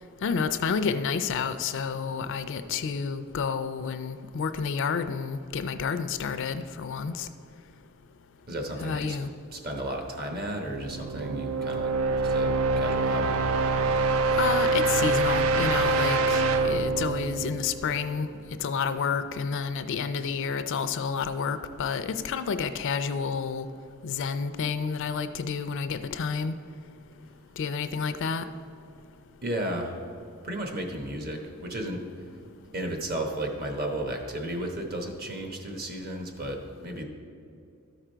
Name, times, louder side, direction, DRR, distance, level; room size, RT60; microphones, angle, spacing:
voice 1, 0.2-7.3 8.8-9.3 14.4-18.3 18.6-23.7 24.0-26.5 27.6-28.5, left 6 dB, 60° left, 11 dB, 0.4 m, -30 dB
voice 2, 8.5-9.2 9.5-13.4 29.4-30.0 30.4-32.0 32.7-37.0, right 1 dB, 45° right, 3 dB, 1.1 m, -33 dB
sound 1, 10.7-18.5, right 3 dB, 70° right, 0.4 m, -25 dB
12.5 x 5.0 x 4.5 m, 2.5 s
head